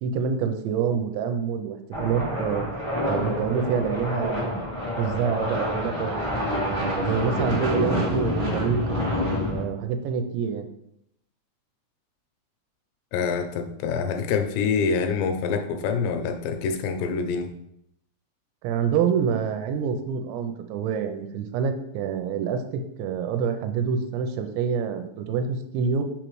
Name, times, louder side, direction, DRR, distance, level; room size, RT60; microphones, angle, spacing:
voice 1, 0.0-2.7 3.0-6.2 6.6-8.8 9.5-10.7 18.6-26.0, right 6 dB, 85° right, 7 dB, 2.8 m, -27 dB
sound 1, 1.9-9.6, left 1 dB, 60° left, 0.3 m, -27 dB
voice 2, 13.1-17.6, left 5 dB, 85° left, 7 dB, 2.7 m, -26 dB
6.3 x 5.1 x 3.1 m, 0.77 s
omnidirectional pair, 5.1 m